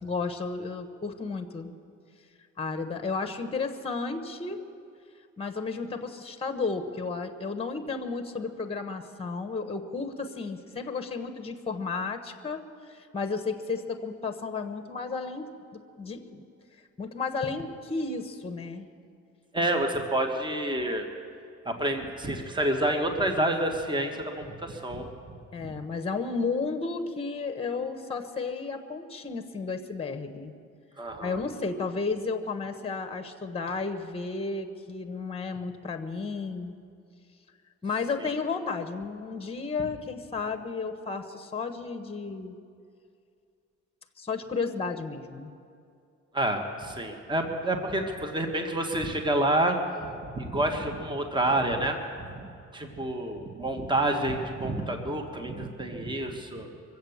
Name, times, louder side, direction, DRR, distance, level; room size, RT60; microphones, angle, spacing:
voice 1, 0.0-1.7 2.6-4.6 5.4-16.4 17.0-18.9 25.5-30.6 31.2-36.8 37.8-42.6 44.2-45.5, left 4 dB, 20° left, 9 dB, 1.1 m, -33 dB
voice 2, 19.5-21.1 21.6-25.1 31.0-31.4 38.2-38.3 46.3-52.4 52.7-56.7, right 1 dB, 15° right, 4 dB, 1.5 m, -28 dB
24.0 x 8.1 x 7.2 m, 2.4 s
cardioid pair, 90°, 30 cm